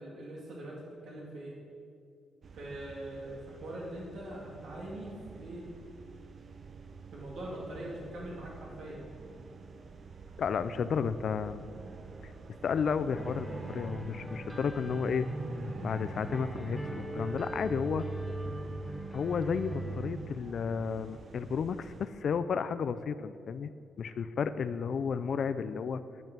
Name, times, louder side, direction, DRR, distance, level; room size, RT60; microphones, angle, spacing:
voice 1, 0.0-1.6 2.5-5.7 7.1-9.1, right 1 dB, 65° right, -3 dB, 2.3 m, -42 dB
sound 1, 2.4-22.1, right 4 dB, 40° right, 0.7 m, -48 dB
voice 2, 10.4-11.6 12.2-12.3 12.6-15.3 15.8-18.0 19.1-23.7 24.0-26.0, left 6 dB, 50° left, 12 dB, 0.4 m, -32 dB
sound 2, 13.2-20.1, right 1 dB, 5° right, 0.9 m, -39 dB
10.5 x 9.0 x 6.1 m, 2.4 s
cardioid pair, 145°, 0 cm